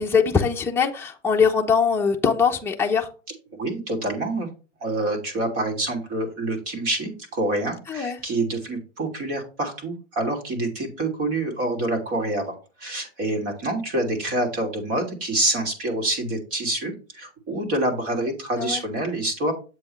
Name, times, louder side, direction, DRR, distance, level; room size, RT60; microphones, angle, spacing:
voice 1, 0.0-3.1 7.9-8.2 18.6-18.8, left 6 dB, 5° left, 0.9 m, -22 dB
voice 2, 3.6-4.5 4.8-19.5, right 2 dB, 40° right, 3.0 m, -27 dB
7.8 x 7.0 x 3.2 m
supercardioid pair, 130°, 37 cm